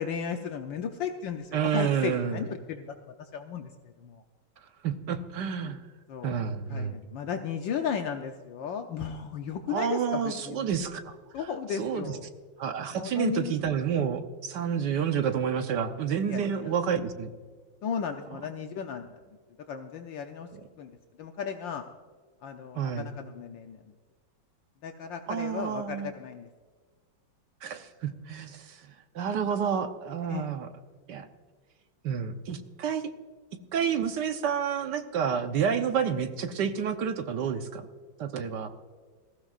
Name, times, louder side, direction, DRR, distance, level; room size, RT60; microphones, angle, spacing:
voice 1, 0.0-3.7 4.0-4.2 5.6-5.8 6.1-10.7 11.3-12.3 12.9-13.5 16.3-16.7 17.8-19.1 19.7-20.5 20.8-20.9 21.2-21.8 22.4-23.8 24.8-26.5 30.3-30.5, left 7 dB, 70° left, 4 dB, 1.4 m, -35 dB
voice 2, 1.5-2.4 4.8-5.8 6.2-7.0 9.7-11.1 11.8-12.1 12.6-17.3 20.5-20.7 22.7-23.1 25.3-26.1 27.6-28.8 29.1-30.7 31.1-31.3 32.0-33.1 33.7-37.9 38.2-38.7, right 7 dB, 65° right, 8 dB, 1.4 m, -29 dB
20.5 x 15.0 x 2.4 m, 1.5 s
omnidirectional pair, 2.2 m